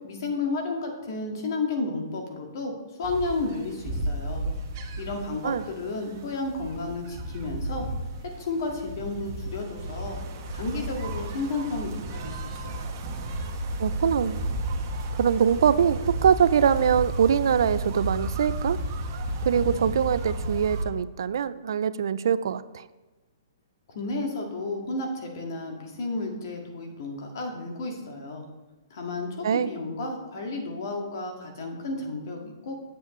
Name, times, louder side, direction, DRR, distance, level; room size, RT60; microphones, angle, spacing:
voice 1, 0.0-2.7 3.0-4.4 5.0-7.9 8.2-10.2 10.5-12.9 23.9-28.5 28.9-32.7, left 3 dB, 55° left, 2 dB, 1.8 m, -32 dB
sound 1, 3.0-20.8, right 1 dB, 35° right, 1.1 m, -33 dB
voice 2, 13.8-14.4 15.1-18.8 19.5-22.8 29.4-29.7, right 8 dB, 70° right, 15 dB, 0.4 m, -23 dB
8.0 x 7.6 x 3.1 m, 1.2 s
hypercardioid pair, 155°, 2 cm